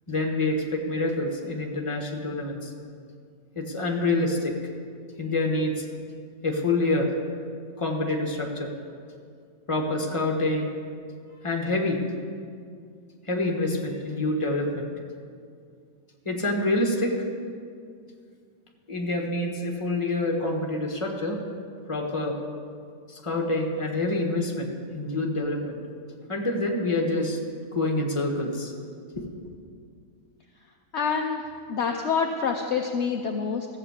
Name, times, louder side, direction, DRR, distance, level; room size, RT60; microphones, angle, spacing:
voice 1, 0.1-2.7 3.5-4.5 5.2-5.8 6.4-7.1 7.8-8.7 9.7-10.7 11.4-12.0 13.3-14.9 16.2-17.2 18.9-21.4 21.9-22.4 23.1-25.8 26.3-27.4 27.7-28.7 29.2-29.3, left 2 dB, 20° left, 1 dB, 1.5 m, -27 dB
voice 2, 30.9-31.4 31.7-33.7, left 6 dB, 60° left, 2 dB, 1.0 m, -26 dB
14.5 x 7.4 x 8.2 m, 2.3 s
omnidirectional pair, 1.5 m